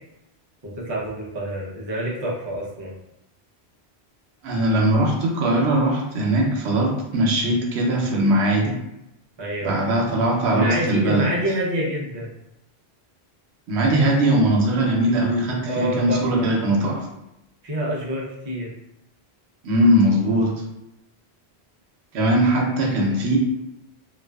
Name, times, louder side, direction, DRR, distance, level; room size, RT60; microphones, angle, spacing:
voice 1, 0.6-2.9 9.4-9.8 10.5-12.3 15.6-16.5 17.6-18.7, right 1 dB, 35° right, -4 dB, 0.4 m, -27 dB
voice 2, 4.4-8.8 9.6-11.3 13.7-17.1 19.6-20.5 22.1-23.4, right 1 dB, 85° right, 0 dB, 0.9 m, -20 dB
2.4 x 2.3 x 2.2 m, 0.87 s
omnidirectional pair, 1.1 m